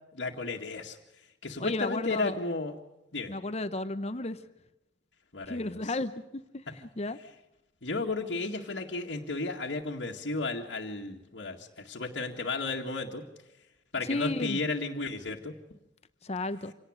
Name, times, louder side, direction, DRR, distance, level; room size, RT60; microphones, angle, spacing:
voice 1, 0.1-1.0 1.4-2.8 3.1-3.3 5.3-5.9 7.8-13.3 13.9-15.5, left 3 dB, 80° left, -3 dB, 2.1 m, -33 dB
voice 2, 1.6-2.4 3.3-4.4 5.5-7.2 14.0-14.6 16.2-16.7, left 2 dB, 35° left, 12 dB, 0.9 m, -33 dB
26.5 x 18.0 x 6.5 m, 0.90 s
head